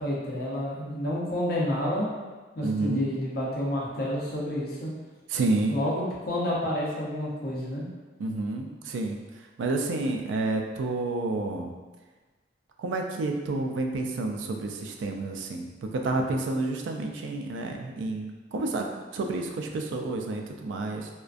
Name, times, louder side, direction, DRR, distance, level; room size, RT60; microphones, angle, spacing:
voice 1, 0.0-2.1 2.6-4.9 5.7-7.8, left 1 dB, 55° left, -5 dB, 0.6 m, -29 dB
voice 2, 2.6-3.1 5.3-5.8 8.2-9.2 9.6-11.7 12.8-15.7 15.9-18.8 19.1-21.1, right 2 dB, 90° right, 3 dB, 0.3 m, -29 dB
2.4 x 2.1 x 2.4 m, 1.3 s
head